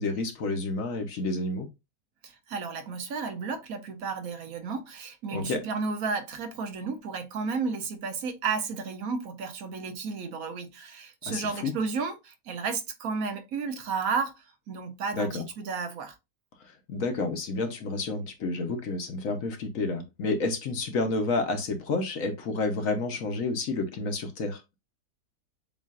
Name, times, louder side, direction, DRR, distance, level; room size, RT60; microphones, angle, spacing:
voice 1, 0.0-1.7 5.3-5.6 11.2-11.7 15.1-15.4 16.9-24.6, left 3 dB, 65° left, 1.2 m, -30 dB
voice 2, 2.2-16.1, right 5 dB, 70° right, 1.3 m, -33 dB
7.3 x 2.5 x 2.4 m
omnidirectional pair, 1.6 m